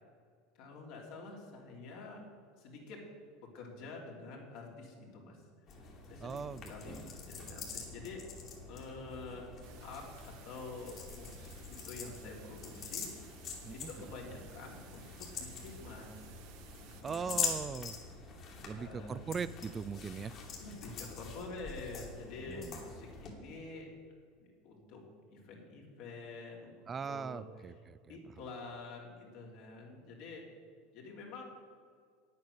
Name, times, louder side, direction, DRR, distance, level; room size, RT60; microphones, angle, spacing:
voice 1, 0.6-2.2 2.6-3.0 3.4-5.4 5.8-6.4 6.7-8.2 8.7-9.5 9.8-10.1 10.4-13.1 13.7-16.2 16.8-17.3 18.6-19.3 20.6-23.9 24.4-25.0 25.3-27.4 28.1-30.4 30.9-31.4, left 3 dB, 65° left, -1 dB, 3.1 m, -48 dB
sound 1, 5.7-23.3, left 5 dB, 45° left, 2.5 m, -44 dB
voice 2, 6.2-7.1 13.6-14.1 17.0-18.0 18.6-20.3 22.4-22.8 26.9-28.2, right 6 dB, 25° right, 17 dB, 0.4 m, -40 dB
sound 2, 9.6-17.0, right 8 dB, 65° right, 1.2 m, -58 dB
9.6 x 8.5 x 6.6 m, 2.1 s
supercardioid pair, 115°, 0 cm